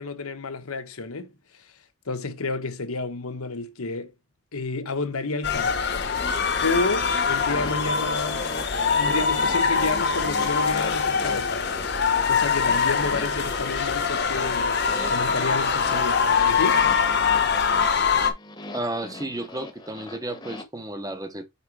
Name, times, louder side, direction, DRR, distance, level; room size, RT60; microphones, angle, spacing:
voice 1, 0.0-1.6 2.1-4.1 4.5-5.9 6.6-8.5 9.0-11.6 12.3-14.8 15.1-16.8, left 3 dB, 85° left, 1.0 m, -30 dB
sound 1, 5.4-18.3, left 5 dB, 50° left, 0.9 m, -23 dB
sound 2, 5.9-20.6, left 1 dB, 20° left, 0.9 m, -41 dB
voice 2, 18.7-21.5, right 1 dB, 15° right, 0.7 m, -32 dB
5.5 x 3.8 x 4.7 m
head